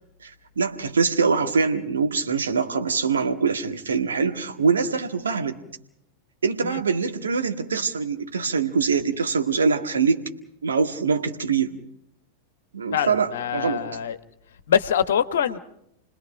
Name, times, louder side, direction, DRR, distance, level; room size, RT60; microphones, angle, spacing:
voice 1, 0.5-5.6 6.4-10.2 10.6-11.8 12.7-13.8, right 5 dB, 70° right, 5 dB, 1.8 m, -23 dB
voice 2, 12.9-14.2 14.7-15.6, left 8 dB, 60° left, 12 dB, 1.2 m, -24 dB
29.5 x 20.0 x 5.2 m, 0.76 s
figure-of-eight pair, 90°, 0 cm